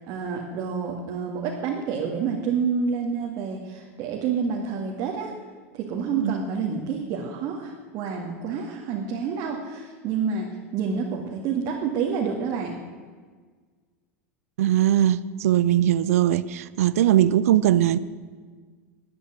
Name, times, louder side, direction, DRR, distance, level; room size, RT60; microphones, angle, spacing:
voice 1, 0.1-5.3 5.7-12.8, right 6 dB, 50° right, 2.2 m, -28 dB
voice 2, 14.6-18.0, right 12 dB, 75° right, 0.6 m, -20 dB
12.0 x 10.0 x 9.2 m
hypercardioid pair, 100°, 8 cm